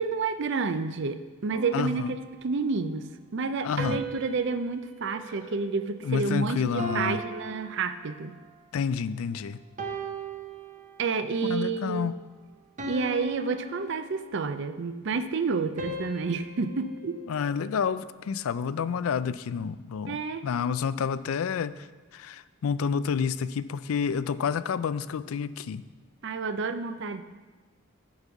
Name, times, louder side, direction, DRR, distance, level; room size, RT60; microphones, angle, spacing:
voice 1, 0.0-2.2 2.4-8.4 11.0-12.1 12.9-17.2 20.1-20.5 26.2-27.2, right 4 dB, 55° right, 11 dB, 0.5 m, -30 dB
sound 1, 1.5-2.8 3.8-6.3 6.8-8.5 9.1-9.3 9.8-11.3 11.8-12.1 12.8-14.7 15.8-18.2, right 1 dB, 35° right, 0.9 m, -40 dB
voice 2, 1.7-2.1 3.6-4.0 6.0-7.2 8.7-9.6 11.4-12.1 17.3-25.8, left 6 dB, 80° left, 15 dB, 0.4 m, -29 dB
7.9 x 5.3 x 7.2 m, 1.3 s
head